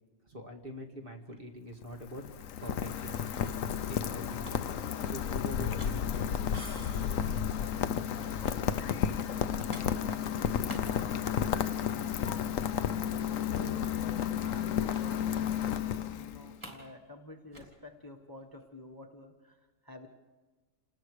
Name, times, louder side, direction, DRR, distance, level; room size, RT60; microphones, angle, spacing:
voice 1, 0.3-3.2 3.9-4.7 5.0-6.5, equal, 40° right, 2 dB, 2.4 m, -44 dB
sound 1, 0.9-6.7 7.0-11.9 12.2-12.5 12.8-12.9 13.2-13.9 14.9-15.1 15.5-15.6 15.9-16.9 17.2-18.9, equal, 20° right, 3.4 m, -53 dB
Rain, 1.7-16.5, left 8 dB, 75° left, 1.2 m, -32 dB
sound 2, 6.5-7.6, right 1 dB, 65° right, 4.6 m, -49 dB
voice 2, 13.5-13.9 14.4-19.6 19.8-20.1, left 1 dB, 15° left, 4 dB, 1.4 m, -50 dB
29.0 x 19.5 x 4.9 m, 1.2 s
omnidirectional pair, 1.4 m